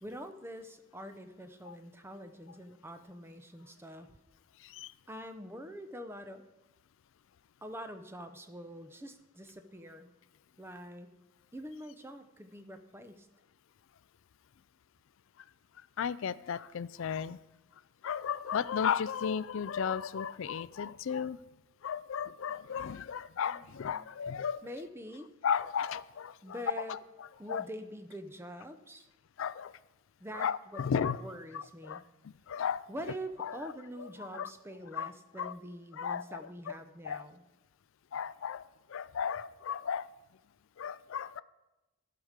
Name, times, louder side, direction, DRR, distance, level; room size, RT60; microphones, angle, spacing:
voice 1, 0.0-4.1 5.1-6.4 7.6-10.1 10.6-11.1 11.5-13.3 23.5-24.1 24.6-25.3 26.4-27.0 27.4-29.1 30.2-32.0 32.9-37.4, equal, 10° right, 8 dB, 0.6 m, -45 dB
voice 2, 16.0-17.4 18.0-21.4 21.8-24.6 25.4-27.0 27.5-27.6 29.4-29.7 30.3-31.2 31.5-32.0 32.5-32.8 33.4-33.6 34.3-34.5 34.9-35.1 35.4-35.5 35.9-36.4 37.0-37.3 38.1-40.1 40.8-41.4, left 7 dB, 60° left, 18 dB, 0.3 m, -34 dB
14.0 x 5.0 x 6.6 m, 1.0 s
head